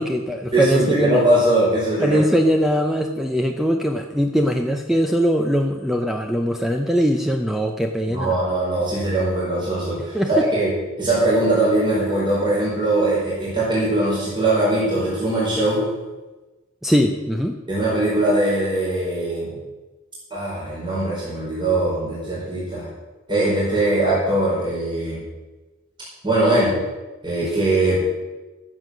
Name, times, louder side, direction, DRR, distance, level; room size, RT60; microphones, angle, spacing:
voice 1, 0.0-1.2 2.0-8.3 10.1-10.5 16.8-17.6, equal, ahead, 3 dB, 0.6 m, -21 dB
voice 2, 0.5-2.2 8.1-10.7 11.0-15.9 17.7-19.5 20.3-22.9 23.3-25.2 26.2-26.8 27.2-28.0, right 1 dB, 25° right, -8 dB, 4.5 m, -21 dB
13.0 x 7.6 x 6.3 m, 1.2 s
head